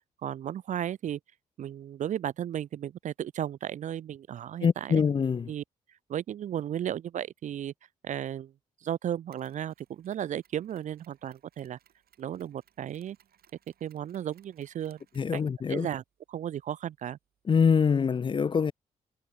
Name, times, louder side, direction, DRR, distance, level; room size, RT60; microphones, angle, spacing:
voice 1, 0.2-1.2 1.6-5.0 5.5-5.6 6.1-7.7 8.0-8.5 8.8-11.8 12.2-13.2 13.8-15.0 15.3-15.4 15.7-16.0 16.3-17.2, right 10 dB, 50° right, 0.4 m, -34 dB
voice 2, 4.6-5.5 15.2-15.9 17.5-18.7, left 6 dB, 30° left, 0.4 m, -24 dB
Mechanisms, 9.3-17.6, right 10 dB, 65° right, 7.7 m, -67 dB
hypercardioid pair, 40°, 17 cm